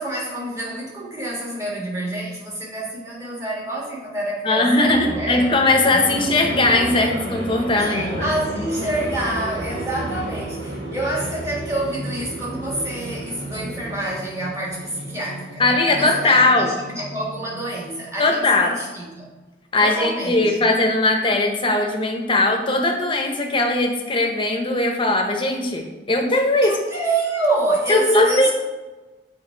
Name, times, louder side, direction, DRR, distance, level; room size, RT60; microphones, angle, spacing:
voice 1, 0.0-5.5 5.9-6.2 7.8-15.6 15.9-19.3 19.8-20.7 26.6-28.5, right 2 dB, 15° right, -4 dB, 1.5 m, -27 dB
voice 2, 4.4-8.2 15.6-16.7 18.2-18.8 19.7-26.8 27.9-28.5, left 2 dB, 30° left, 2 dB, 0.8 m, -19 dB
sound 1, 4.6-17.9, right 1 dB, 80° right, 1.3 m, -32 dB
7.1 x 3.5 x 4.5 m, 1.2 s
head